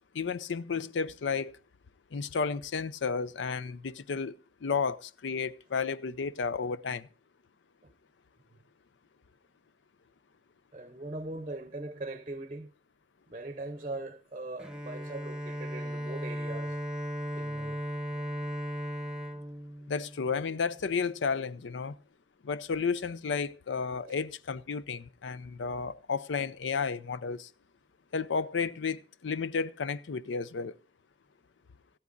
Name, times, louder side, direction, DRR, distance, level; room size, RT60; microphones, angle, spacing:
voice 1, 0.1-1.6 2.1-4.4 4.6-7.1 19.9-22.0 22.4-27.5 28.1-30.7, left 5 dB, 85° left, 0.5 m, -32 dB
voice 2, 10.7-12.7 13.3-16.8 17.3-17.8 18.1-18.3 24.0-24.1, right 2 dB, 30° right, 0.7 m, -41 dB
Bowed string instrument, 14.6-20.6, equal, 5° right, 0.9 m, -36 dB
18.0 x 13.5 x 2.6 m
head